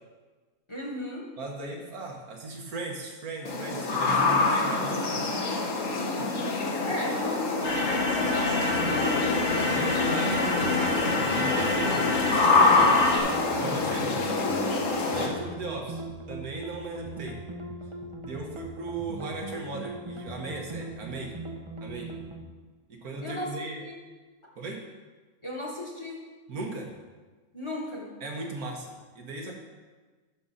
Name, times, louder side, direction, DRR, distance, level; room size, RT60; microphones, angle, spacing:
voice 1, 0.7-1.3 6.8-9.1 23.2-23.5 23.8-24.0 25.4-26.2 27.5-28.2, left 1 dB, 20° left, -2 dB, 1.2 m, -36 dB
voice 2, 1.4-5.3 9.6-13.0 13.6-14.2 15.0-16.0 16.3-17.4 18.2-21.3 21.8-22.1 22.9-23.8 24.6-24.8 26.5-26.9 28.2-29.6, right 2 dB, 85° right, 0 dB, 1.7 m, -37 dB
sound 1, 3.4-15.3, left 3 dB, 65° left, 1.3 m, -26 dB
sound 2, 7.6-13.2, left 3 dB, 45° left, 1.0 m, -28 dB
sound 3, 8.7-22.4, right 2 dB, 30° right, 0.5 m, -40 dB
11.5 x 3.8 x 5.5 m, 1.3 s
omnidirectional pair, 1.5 m